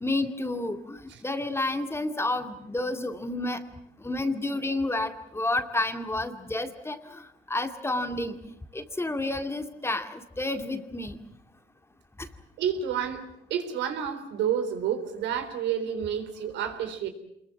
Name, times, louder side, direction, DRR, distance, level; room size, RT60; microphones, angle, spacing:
voice 1, 0.0-3.6 4.0-8.4 8.7-11.2 12.2-12.3, left 2 dB, 15° left, 8 dB, 2.2 m, -30 dB
voice 2, 12.6-13.2 13.5-17.1, right 8 dB, 80° right, 7 dB, 3.7 m, -29 dB
27.0 x 22.0 x 7.3 m, 0.80 s
cardioid pair, 95°, 18 cm